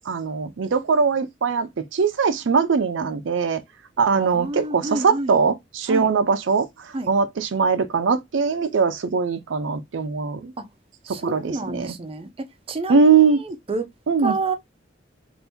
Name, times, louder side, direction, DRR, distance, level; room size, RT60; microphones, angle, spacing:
voice 1, 0.1-3.6 4.0-6.7 7.1-10.5 11.2-11.9 12.9-13.4 14.1-14.4, right 5 dB, 85° right, 0.5 m, -21 dB
voice 2, 4.1-5.3 5.9-6.1 6.9-7.1 11.1-12.3 12.7-13.1 13.4-13.8 14.2-14.6, right 3 dB, 30° right, 0.5 m, -29 dB
2.7 x 2.6 x 3.4 m
head